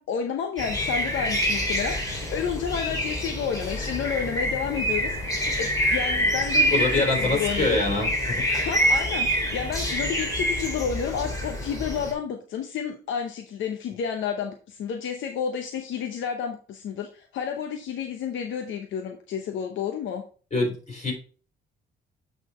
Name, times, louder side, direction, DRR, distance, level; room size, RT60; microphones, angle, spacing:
voice 1, 0.0-7.8 8.5-20.2, left 7 dB, 75° left, 4 dB, 0.8 m, -31 dB
sound 1, 0.6-12.1, equal, 15° left, 3.1 m, -26 dB
voice 2, 6.7-8.4 20.5-21.1, left 2 dB, 35° left, 0 dB, 4.0 m, -25 dB
8.1 x 4.1 x 4.2 m, 0.38 s
cardioid pair, 90°, 20 cm